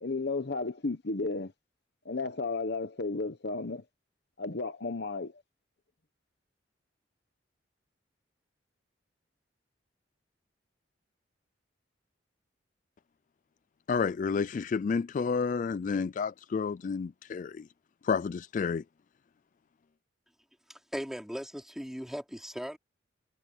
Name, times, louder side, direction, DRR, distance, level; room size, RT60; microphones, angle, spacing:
voice 1, 0.0-1.5 2.0-3.8 4.4-5.3, left 3 dB, 60° left, 1.0 m, -33 dB
voice 2, 13.9-17.6 18.0-18.8, left 5 dB, 45° left, 0.3 m, -30 dB
voice 3, 20.7-22.8, equal, ahead, 3.8 m, -38 dB
head